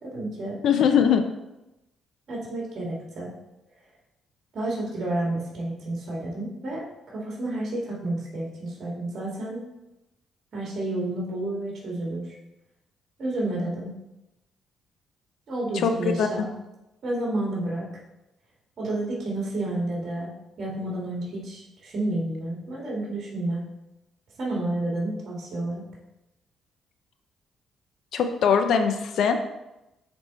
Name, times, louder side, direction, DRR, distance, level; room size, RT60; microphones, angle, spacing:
voice 1, 0.0-0.6 2.3-3.3 4.5-9.6 10.5-12.3 13.2-13.9 15.5-16.5 17.0-17.9 18.8-20.3 20.6-23.6 24.4-25.8, right 1 dB, 55° right, -4 dB, 2.0 m, -30 dB
voice 2, 0.6-1.2 15.8-15.9 16.2-16.3 28.1-29.4, left 7 dB, 70° left, 7 dB, 0.6 m, -21 dB
8.1 x 3.6 x 4.1 m, 0.94 s
cardioid pair, 90°, 0 cm